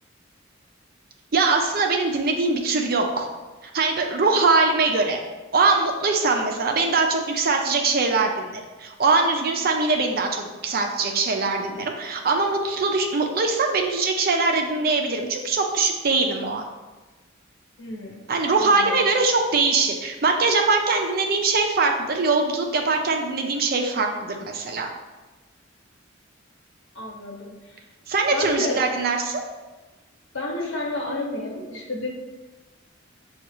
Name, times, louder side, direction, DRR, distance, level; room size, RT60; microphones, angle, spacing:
voice 1, 1.3-3.3 3.7-5.2 5.5-16.6 18.3-24.9 28.1-29.4, right 3 dB, 50° right, 3 dB, 0.5 m, -22 dB
voice 2, 17.8-18.2 18.6-19.1 26.9-27.8 28.3-28.8 30.3-32.1, left 2 dB, 90° left, -3 dB, 1.2 m, -31 dB
6.3 x 2.3 x 3.0 m, 1.2 s
head